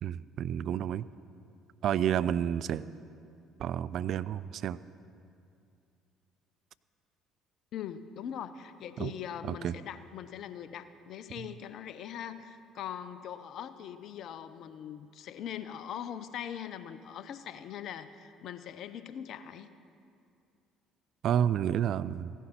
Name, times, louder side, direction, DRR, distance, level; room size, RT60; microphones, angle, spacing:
voice 1, 0.0-1.1 1.8-2.9 3.6-4.8 9.0-9.1 9.4-9.8 21.2-22.3, right 9 dB, 55° right, 16 dB, 0.3 m, -30 dB
voice 2, 7.7-19.7, left 9 dB, 60° left, 13 dB, 0.6 m, -41 dB
16.0 x 11.5 x 4.4 m, 2.5 s
hypercardioid pair, 55°, 0 cm